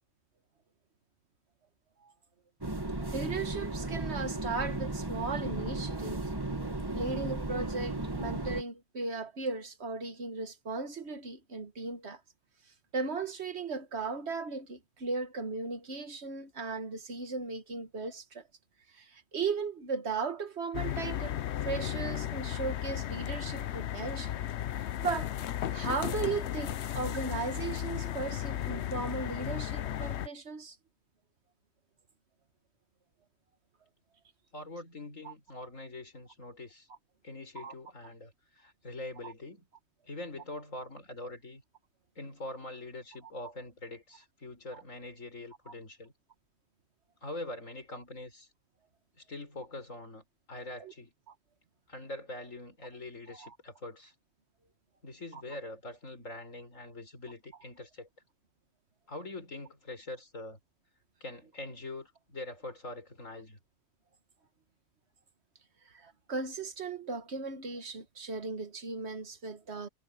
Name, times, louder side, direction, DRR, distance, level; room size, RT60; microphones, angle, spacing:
sound 1, 2.6-8.6, right 2 dB, 20° right, 2.1 m, -35 dB
voice 1, 3.1-6.3 6.9-12.2 12.9-18.4 18.9-21.4 21.6-24.3 25.0-25.3 25.7-30.8 35.2-35.3 37.6-37.7 39.2-39.3 44.7-44.8 50.8-50.9 51.3-51.4 53.3-53.5 55.3-55.4 65.9-69.9, right 4 dB, 60° right, 1.6 m, -36 dB
sound 2, 20.7-30.3, left 11 dB, 65° left, 0.9 m, -35 dB
voice 2, 34.5-36.9 37.2-39.7 40.1-41.6 42.2-46.1 47.2-48.5 49.2-51.1 51.9-54.1 55.0-58.1 59.1-60.6 61.2-63.6, left 2 dB, 85° left, 5.5 m, -43 dB
omnidirectional pair, 1.3 m